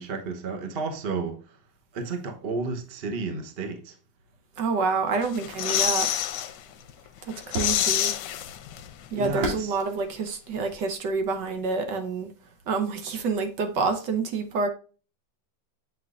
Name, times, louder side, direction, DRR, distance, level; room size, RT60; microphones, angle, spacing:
voice 1, 0.0-1.4 1.9-3.9 9.2-9.7, right 4 dB, 40° right, 1.0 m, -32 dB
voice 2, 4.6-6.1 7.5-8.1 9.1-12.3 12.7-14.7, right 4 dB, 70° right, 1.6 m, -27 dB
sound 1, 5.2-6.5 6.9-7.0 7.3-9.1 9.3-9.4, left 10 dB, 75° left, 1.2 m, -27 dB
sound 2, 5.4-11.7, right 1 dB, 85° right, 2.9 m, -39 dB
7.7 x 5.8 x 2.5 m
omnidirectional pair, 2.0 m